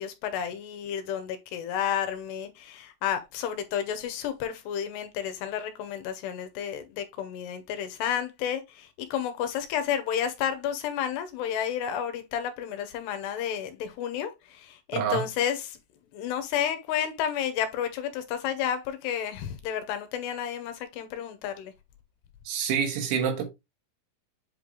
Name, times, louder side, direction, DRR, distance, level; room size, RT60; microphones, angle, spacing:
voice 1, 0.0-15.8 16.1-21.7, left 9 dB, 80° left, 2.8 m, -31 dB
voice 2, 14.9-15.2 22.5-23.5, right 7 dB, 80° right, 3.9 m, -27 dB
8.1 x 3.2 x 3.8 m
omnidirectional pair, 5.1 m